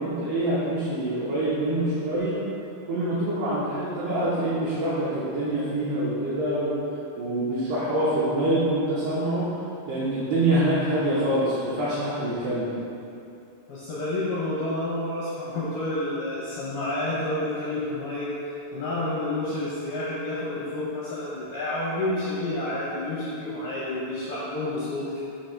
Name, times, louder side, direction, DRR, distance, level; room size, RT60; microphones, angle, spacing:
voice 1, 0.0-2.4 2.9-6.7 7.2-9.5 9.9-12.8, right 1 dB, 80° right, -10 dB, 2.3 m, -25 dB
voice 2, 13.7-25.2, left 1 dB, 80° left, -8 dB, 2.2 m, -29 dB
7.4 x 2.9 x 5.8 m, 2.7 s
omnidirectional pair, 5.8 m